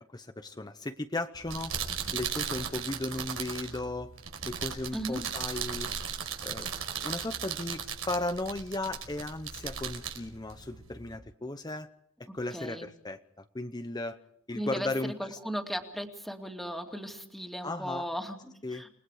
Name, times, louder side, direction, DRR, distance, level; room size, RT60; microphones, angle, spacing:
voice 1, 0.0-1.7 2.1-4.1 4.4-5.9 6.4-6.7 7.0-11.9 12.3-14.2 14.5-15.4 17.6-18.1 18.6-18.8, left 2 dB, 20° left, 8 dB, 0.8 m, -36 dB
sound 1, 1.3-11.2, right 7 dB, 90° right, 5.0 m, -37 dB
voice 2, 4.9-5.2 12.5-12.9 14.5-18.9, equal, ahead, 3 dB, 2.5 m, -37 dB
29.0 x 20.5 x 5.0 m, 0.72 s
head